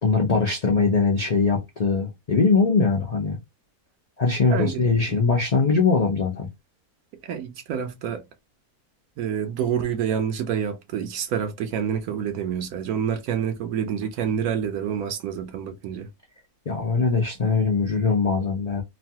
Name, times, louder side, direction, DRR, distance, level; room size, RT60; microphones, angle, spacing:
voice 1, 0.0-3.4 4.2-6.5 16.7-18.8, left 4 dB, 70° left, 0.3 m, -21 dB
voice 2, 4.5-4.8 7.2-8.2 9.2-16.1, right 8 dB, 75° right, 1.0 m, -27 dB
3.0 x 2.2 x 2.7 m
omnidirectional pair, 1.6 m